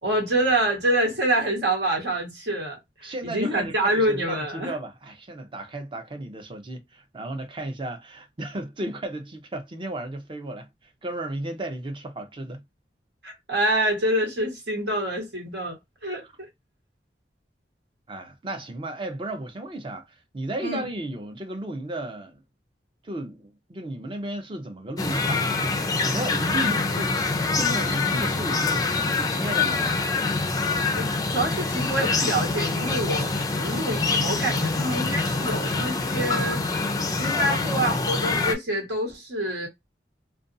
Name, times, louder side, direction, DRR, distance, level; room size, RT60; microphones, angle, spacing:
voice 1, 0.0-4.7 13.2-16.5 20.6-20.8 31.0-36.6 37.2-39.7, right 1 dB, 75° right, 1.4 m, -26 dB
voice 2, 3.0-10.7 11.0-12.6 16.2-16.3 18.1-22.4 23.0-30.0 37.3-37.9, right 1 dB, 30° right, 0.6 m, -34 dB
sound 1, 25.0-38.5, left 3 dB, 20° left, 0.4 m, -25 dB
2.5 x 2.3 x 2.6 m
head